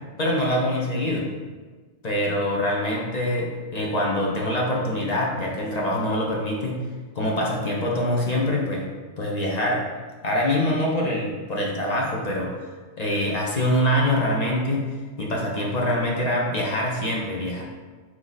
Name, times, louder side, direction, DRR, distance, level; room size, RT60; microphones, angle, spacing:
voice 1, 0.2-1.3 2.0-6.8 7.2-8.8 9.2-9.8 10.2-12.5 13.0-14.9 15.2-17.6, left 1 dB, 45° left, -2 dB, 0.5 m, -24 dB
4.6 x 2.7 x 3.9 m, 1.4 s
omnidirectional pair, 1.5 m